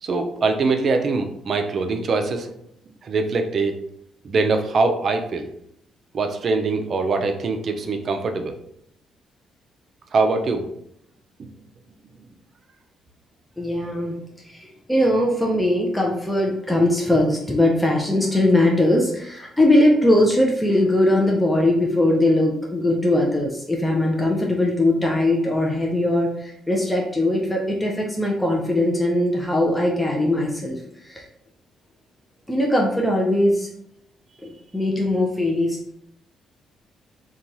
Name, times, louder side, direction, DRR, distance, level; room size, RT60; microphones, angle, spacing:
voice 1, 0.0-2.5 3.0-3.8 4.2-5.5 6.1-8.6 10.1-10.6, right 3 dB, 50° right, 5 dB, 0.4 m, -22 dB
voice 2, 13.6-14.1 14.4-31.3 32.5-33.7 34.4-35.8, left 1 dB, 5° left, -1 dB, 0.4 m, -20 dB
2.9 x 2.3 x 2.6 m, 0.72 s
cardioid pair, 90°, 0 cm